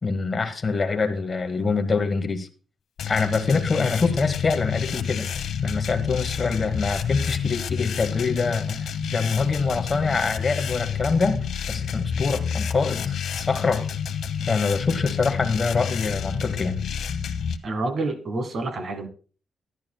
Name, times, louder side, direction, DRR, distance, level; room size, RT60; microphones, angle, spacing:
voice 1, 0.0-2.5 3.1-5.3 5.6-11.4 11.7-13.9 14.5-16.8, left 4 dB, 30° left, 1.1 m, -25 dB
sound 1, 3.0-17.6, left 7 dB, 80° left, 0.8 m, -29 dB
voice 2, 17.6-19.1, right 2 dB, 50° right, 1.3 m, -28 dB
13.0 x 10.5 x 2.2 m
cardioid pair, 140°, 0 cm